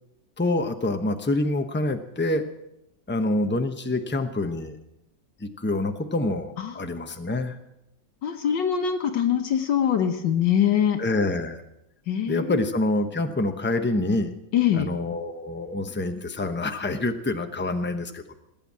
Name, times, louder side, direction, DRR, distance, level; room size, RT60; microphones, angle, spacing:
voice 1, 0.4-2.4 3.1-4.8 5.4-7.6 11.0-11.6 12.3-14.3 14.7-18.3, left 2 dB, 10° left, 6 dB, 0.5 m, -26 dB
voice 2, 8.2-11.0 12.1-12.6 14.5-14.9, left 9 dB, 70° left, 6 dB, 1.7 m, -23 dB
19.5 x 9.1 x 7.4 m, 0.85 s
omnidirectional pair, 2.1 m